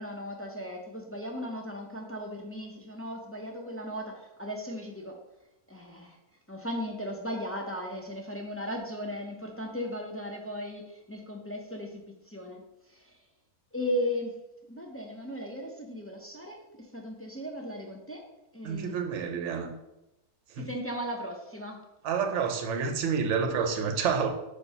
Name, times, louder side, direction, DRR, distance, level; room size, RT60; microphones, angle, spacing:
voice 1, 0.0-5.2 5.7-6.2 6.5-12.6 12.9-13.2 13.7-14.3 14.7-18.2 18.5-18.9 20.6-21.8, equal, 15° left, 0 dB, 0.4 m, -36 dB
voice 2, 18.6-19.7 20.6-20.7 22.0-24.3, right 6 dB, 55° right, 5 dB, 1.0 m, -29 dB
5.3 x 4.3 x 5.5 m, 0.93 s
omnidirectional pair, 1.6 m